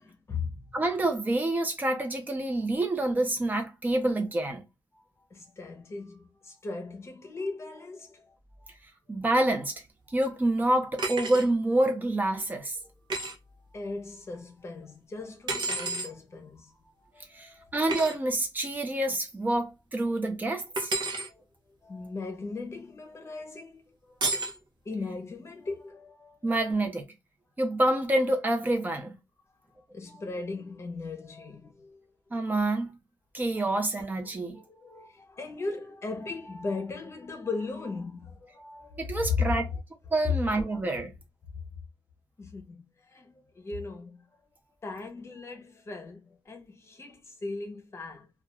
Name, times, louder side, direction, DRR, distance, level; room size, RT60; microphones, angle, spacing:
voice 1, 0.0-0.8 4.9-5.0 5.3-8.3 8.6-8.7 13.7-17.7 21.2-21.4 21.8-24.2 24.8-26.7 29.9-32.1 33.5-33.6 34.2-39.8 40.7-40.8 42.4-44.2 44.8-48.3, left 4 dB, 35° left, 0.8 m, -38 dB
voice 2, 0.7-4.6 9.1-9.7 10.1-12.8 17.3-20.9 26.4-27.0 27.6-29.1 32.3-32.9 33.3-34.6 39.0-39.6 40.1-41.1, right 1 dB, 25° right, 0.7 m, -27 dB
sound 1, 11.0-11.5 13.1-13.3 15.5-16.1 17.9-18.1 20.8-21.3 24.2-24.6, right 3 dB, 75° right, 0.6 m, -30 dB
2.4 x 2.4 x 3.0 m
wide cardioid pair, 165°, 8 cm